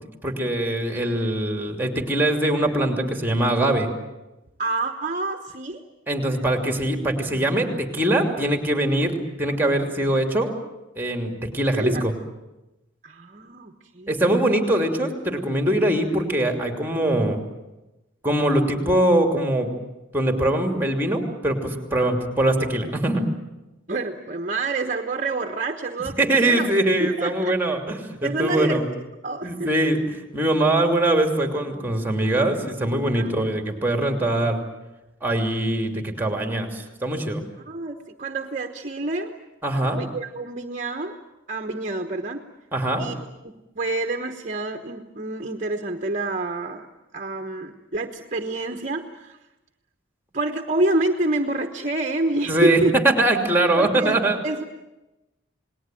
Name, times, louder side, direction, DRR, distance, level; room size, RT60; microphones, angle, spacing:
voice 1, 0.0-3.9 6.1-9.1 9.4-10.5 11.0-12.1 14.1-17.4 18.2-19.7 20.1-23.2 26.2-28.9 29.4-30.0 30.3-34.6 35.2-37.4 39.6-40.0 42.7-43.0 52.5-52.8 53.2-54.4, right 1 dB, 10° right, 5 dB, 2.8 m, -22 dB
voice 2, 4.6-5.8 11.7-12.1 13.0-14.5 22.0-22.1 23.9-27.5 28.2-28.8 29.2-29.7 33.1-33.3 37.7-39.3 40.0-41.2 41.5-42.4 43.0-43.2 43.8-46.9 47.1-49.4 50.3-52.9 53.8-54.2 54.4-54.6, right 2 dB, 40° right, 6 dB, 1.1 m, -27 dB
28.5 x 19.5 x 9.1 m, 1.0 s
head